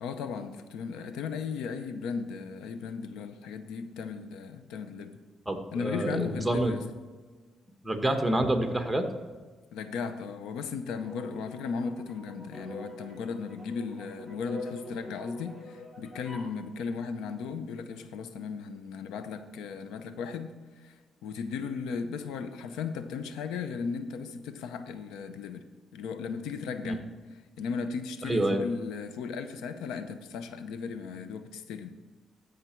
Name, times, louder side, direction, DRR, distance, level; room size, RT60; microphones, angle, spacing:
voice 1, 0.0-5.2 5.7-6.9 9.7-21.0 21.2-27.1 27.6-32.0, left 5 dB, 90° left, 0.7 m, -36 dB
voice 2, 5.5-6.8 7.8-9.1 26.8-27.0 28.2-28.6, right 1 dB, 10° right, 1.2 m, -27 dB
sound 1, 10.9-16.6, left 1 dB, 15° left, 3.2 m, -45 dB
14.0 x 5.1 x 4.5 m
cardioid pair, 90°, 0 cm